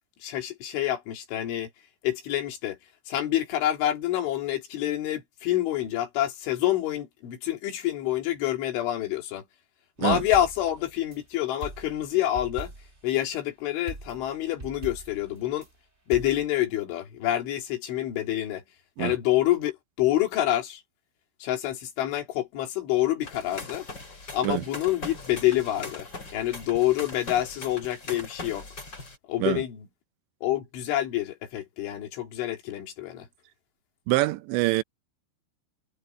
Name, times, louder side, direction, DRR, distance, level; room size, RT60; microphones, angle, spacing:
voice 1, 0.2-1.7 2.0-2.8 3.1-9.4 10.0-12.7 13.0-15.7 16.1-18.6 19.0-20.8 21.4-23.9 24.3-28.6 29.3-29.9 30.4-33.3, left 13 dB, 85° left, 5.1 m, -27 dB
sound 1, 10.0-11.2 11.6-13.1 13.9-15.7 16.1-16.4, right 2 dB, 20° right, 2.0 m, -41 dB
sound 2, 23.2-29.2, left 3 dB, 25° left, 5.3 m, -40 dB
voice 2, 34.1-34.8, right 19 dB, 80° right, 2.8 m, -25 dB
omnidirectional pair, 5.3 m